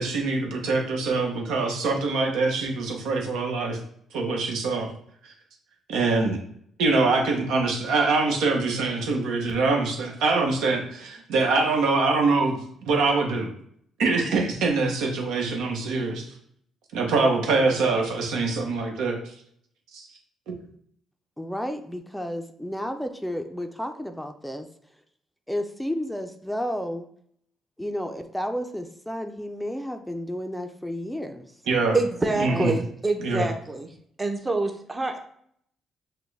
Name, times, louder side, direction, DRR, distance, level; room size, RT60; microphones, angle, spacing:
voice 1, 0.0-3.8 4.1-4.9 5.2-5.3 5.9-6.4 6.8-13.5 14.0-16.3 16.9-19.3 19.9-20.1 20.5-20.6 31.7-32.0 32.4-32.7 33.2-33.5, right 3 dB, 80° right, 2 dB, 1.0 m, -24 dB
voice 2, 21.4-24.7 25.5-27.1 27.8-31.6 32.5-32.8, equal, ahead, 6 dB, 0.5 m, -32 dB
voice 3, 31.9-33.9 34.2-35.2, right 2 dB, 25° right, 5 dB, 0.8 m, -26 dB
5.9 x 2.2 x 3.3 m, 0.66 s
supercardioid pair, 65°, 0 cm